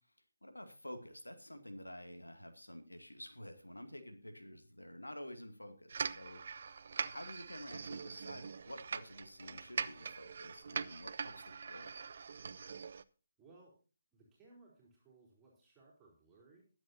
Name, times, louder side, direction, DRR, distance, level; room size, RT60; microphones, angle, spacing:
voice 1, 0.4-6.4 6.7-6.8 7.1-11.9, left 1 dB, 80° left, 6 dB, 2.3 m, -50 dB
sound 1, 5.9-13.0, right 5 dB, 45° right, 0.6 m, -43 dB
voice 2, 13.4-13.7 14.1-16.6, right 3 dB, 10° right, -4 dB, 3.9 m, -62 dB
21.0 x 7.9 x 2.7 m, 0.37 s
figure-of-eight pair, 145°, 0 cm